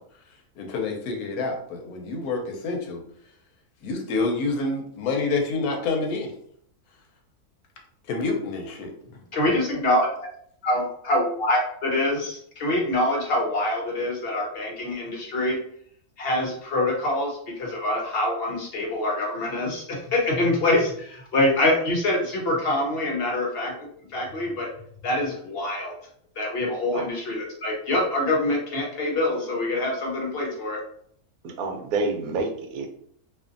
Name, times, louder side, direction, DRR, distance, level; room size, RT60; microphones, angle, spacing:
voice 1, 0.6-3.0 3.8-6.3 8.1-8.9, left 3 dB, 85° left, 2 dB, 1.1 m, -27 dB
voice 2, 9.3-10.1 10.6-15.6 16.2-23.7 24.1-24.7 25.0-25.9 26.4-30.8, left 1 dB, 55° left, -1 dB, 0.7 m, -25 dB
voice 3, 31.4-32.9, right 3 dB, 75° right, 4 dB, 1.0 m, -28 dB
2.5 x 2.5 x 2.4 m, 0.65 s
omnidirectional pair, 1.6 m